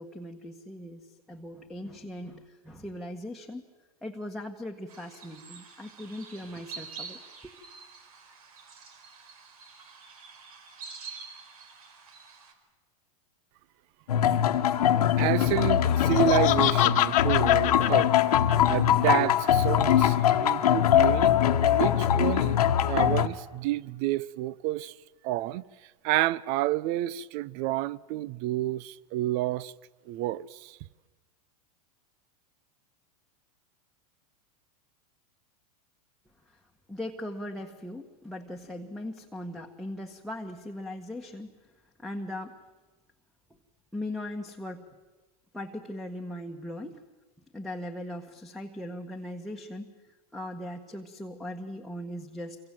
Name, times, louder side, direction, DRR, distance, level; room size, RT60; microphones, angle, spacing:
voice 1, 0.0-3.6 4.0-7.2 36.9-41.6 42.0-42.6 43.9-44.8 45.5-47.0 47.5-49.9 50.3-52.6, left 1 dB, ahead, 1.5 m, -39 dB
sound 1, 4.9-12.5, right 5 dB, 75° right, 4.6 m, -47 dB
sound 2, 14.1-23.3, left 10 dB, 90° left, 1.5 m, -22 dB
voice 2, 15.2-18.1 18.7-22.6 22.8-24.9 25.2-25.6 26.0-29.7 30.1-30.8, right 15 dB, 50° right, 0.8 m, -29 dB
Laughter, 15.9-19.1, left 17 dB, 40° left, 1.3 m, -28 dB
27.5 x 24.0 x 7.7 m
supercardioid pair, 130°, 19 cm